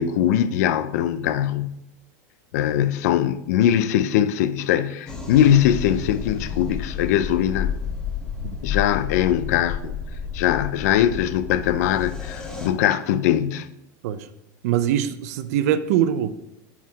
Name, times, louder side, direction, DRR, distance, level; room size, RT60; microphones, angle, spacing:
voice 1, 0.0-1.8 2.5-7.7 8.6-10.0 10.3-13.7, left 10 dB, 65° left, 0.4 m, -21 dB
sound 1, 5.1-12.7, left 7 dB, 5° left, 0.9 m, -31 dB
voice 2, 14.6-16.3, right 10 dB, 60° right, 0.5 m, -22 dB
5.6 x 4.7 x 4.6 m
supercardioid pair, 175°, 9 cm